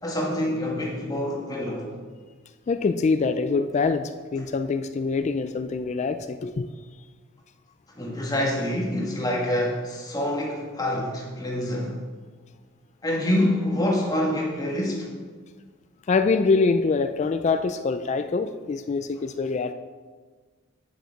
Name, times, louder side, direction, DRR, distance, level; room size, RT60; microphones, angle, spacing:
voice 1, 0.0-1.9 8.0-12.0 13.0-15.1, left 1 dB, 20° left, -2 dB, 1.5 m, -26 dB
voice 2, 2.7-6.7 16.1-19.7, left 4 dB, 35° left, 10 dB, 0.3 m, -24 dB
9.4 x 6.5 x 4.6 m, 1.5 s
head